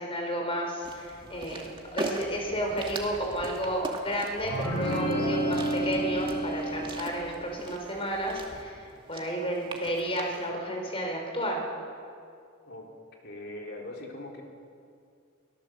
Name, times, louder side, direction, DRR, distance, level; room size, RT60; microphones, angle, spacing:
voice 1, 0.0-1.7 1.9-11.6, equal, 25° left, 1 dB, 5.0 m, -32 dB
sound 1, 0.8-10.5, right 2 dB, 25° right, 2.3 m, -41 dB
sound 2, 4.4-7.2, right 1 dB, 80° left, 7.8 m, -30 dB
voice 2, 13.2-14.4, left 1 dB, 55° left, 0 dB, 3.9 m, -41 dB
23.5 x 17.0 x 7.6 m, 2.3 s
head